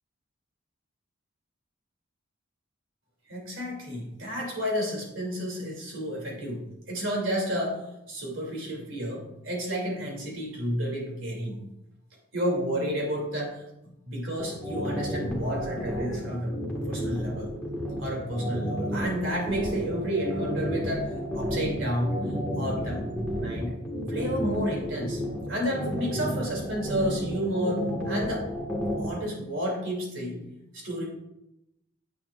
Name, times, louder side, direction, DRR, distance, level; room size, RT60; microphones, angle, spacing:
voice 1, 3.3-7.8 8.1-11.6 12.3-13.6 14.1-17.5 18.0-22.2 22.6-23.8 24.1-25.2 25.5-28.5 29.0-30.4 30.7-31.0, equal, 70° right, -2 dB, 2.7 m, -31 dB
sound 1, 14.4-29.1, equal, 5° left, 1.6 m, -31 dB
10.0 x 8.3 x 2.5 m, 0.87 s
head